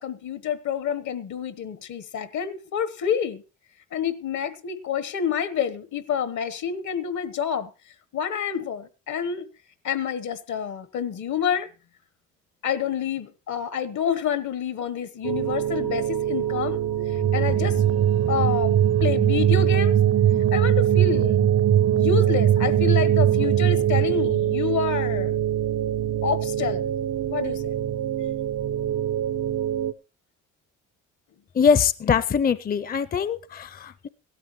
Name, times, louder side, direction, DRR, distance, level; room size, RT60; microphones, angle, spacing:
voice 1, 0.0-3.4 3.9-7.7 8.1-9.5 9.8-11.7 12.6-16.8 17.1-17.8 18.3-20.0 20.4-21.4 21.9-25.4 26.2-26.9 27.3-27.8, left 8 dB, 70° left, 1.2 m, -28 dB
sound 1, 15.2-29.9, right 11 dB, 90° right, 0.8 m, -25 dB
sound 2, 17.1-24.5, right 10 dB, 45° right, 0.5 m, -21 dB
voice 2, 31.5-34.1, left 6 dB, 30° left, 0.5 m, -22 dB
17.0 x 12.5 x 3.1 m
cardioid pair, 90°, 30 cm